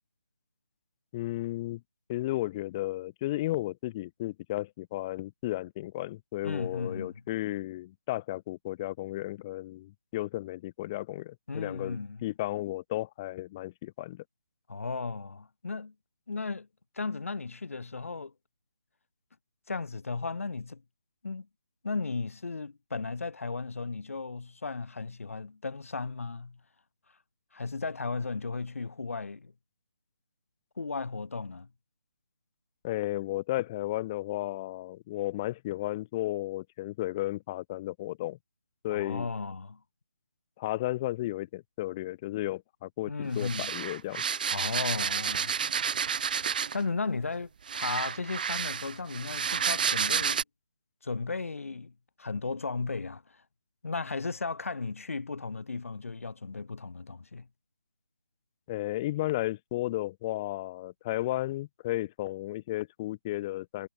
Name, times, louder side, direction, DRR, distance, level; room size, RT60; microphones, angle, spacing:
voice 1, 1.1-1.8 2.1-14.2 32.8-38.4 38.8-39.3 40.6-44.2 58.7-63.9, left 16 dB, 15° left, 3.3 m, -34 dB
voice 2, 6.4-7.2 11.5-12.2 14.7-15.9 16.3-16.7 16.9-18.3 19.7-20.8 21.2-21.5 21.8-26.6 27.5-29.5 30.8-31.7 38.9-39.8 43.1-43.7 44.5-45.5 46.7-47.5 47.7-50.4 51.0-53.4 53.8-57.5, left 4 dB, 60° left, 6.6 m, -35 dB
sound 1, 43.4-46.9 47.7-50.4, right 7 dB, 35° right, 2.1 m, -30 dB
figure-of-eight pair, 170°, 8 cm